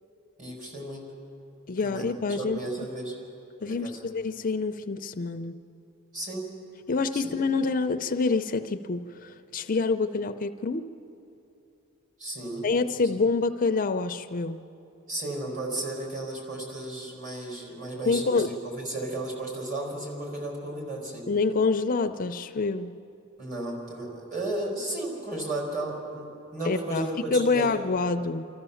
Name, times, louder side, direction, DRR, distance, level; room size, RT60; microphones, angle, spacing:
voice 1, 0.4-1.1 1.8-3.1 3.6-4.0 6.1-6.5 7.1-7.3 12.2-12.7 15.1-21.3 23.4-27.7, right 2 dB, 40° right, -1 dB, 4.8 m, -34 dB
voice 2, 1.7-2.9 3.6-5.6 6.9-10.9 12.6-14.6 18.0-18.5 21.3-23.0 26.7-27.1 27.3-28.5, left 4 dB, 40° left, 9 dB, 0.5 m, -27 dB
26.0 x 14.0 x 7.1 m, 2.9 s
head